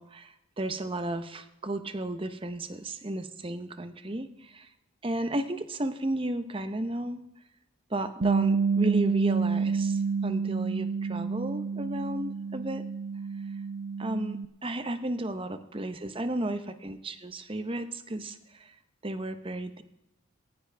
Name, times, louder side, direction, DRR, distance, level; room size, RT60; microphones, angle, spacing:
voice 1, 0.0-4.7 5.0-7.2 7.9-12.8 14.0-18.7 19.0-19.8, right 1 dB, 25° right, 10 dB, 0.8 m, -33 dB
Bass guitar, 8.2-14.5, right 5 dB, 60° right, 0.6 m, -29 dB
18.0 x 15.0 x 3.5 m, 0.90 s
head